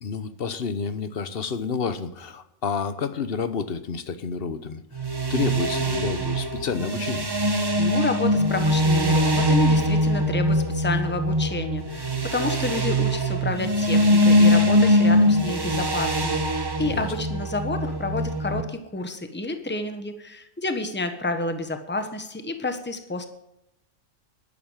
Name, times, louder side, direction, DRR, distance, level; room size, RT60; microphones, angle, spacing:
voice 1, 0.0-4.8 5.3-7.3 16.8-17.1, left 5 dB, 45° left, 12 dB, 1.1 m, -29 dB
sound 1, 4.9-18.6, equal, 20° right, 1.0 m, -22 dB
voice 2, 7.8-16.4 16.8-23.3, left 2 dB, 10° left, 7 dB, 1.2 m, -29 dB
11.5 x 11.0 x 7.3 m, 0.84 s
omnidirectional pair, 1.4 m